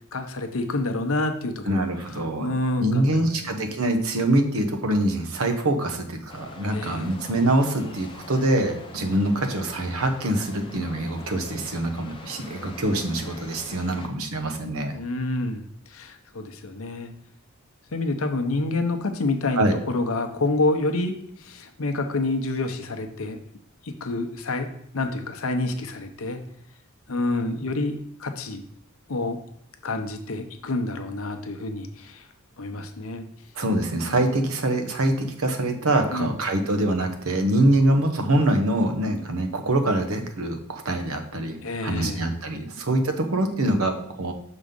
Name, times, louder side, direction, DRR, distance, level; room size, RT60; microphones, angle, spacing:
voice 1, 0.1-3.7 6.7-7.1 14.9-17.1 17.9-23.4 23.8-24.7 24.9-26.4 27.1-28.6 29.1-29.4 29.8-32.2 32.6-33.3 34.1-34.2 36.1-36.4 41.6-42.3, left 2 dB, 70° left, 6 dB, 0.8 m, -28 dB
voice 2, 1.6-2.5 2.8-15.0 19.5-19.8 33.5-41.6 41.8-44.3, right 1 dB, 70° right, 6 dB, 0.9 m, -24 dB
sound 1, 6.3-14.1, left 2 dB, 25° left, 0.7 m, -43 dB
6.2 x 3.8 x 5.2 m, 0.69 s
head